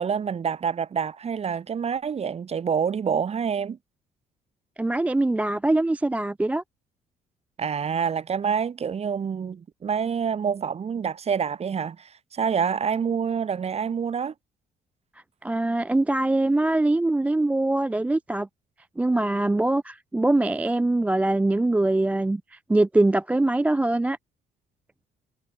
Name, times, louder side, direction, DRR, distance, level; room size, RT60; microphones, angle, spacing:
voice 1, 0.0-3.8 7.6-14.3, right 7 dB, 40° right, 3.7 m, -27 dB
voice 2, 4.8-6.6 15.4-18.5 19.0-24.2, right 2 dB, 10° right, 0.3 m, -23 dB
cardioid pair, 110°, 17 cm